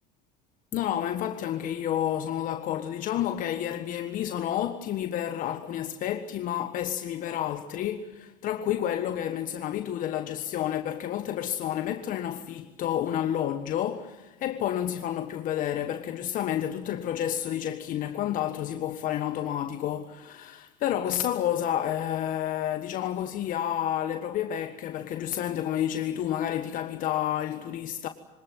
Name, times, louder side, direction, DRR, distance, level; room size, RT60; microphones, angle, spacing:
voice 1, 0.7-28.1, left 11 dB, 55° left, 1.5 m, -30 dB
24.5 x 19.0 x 9.2 m
supercardioid pair, 85°, 17 cm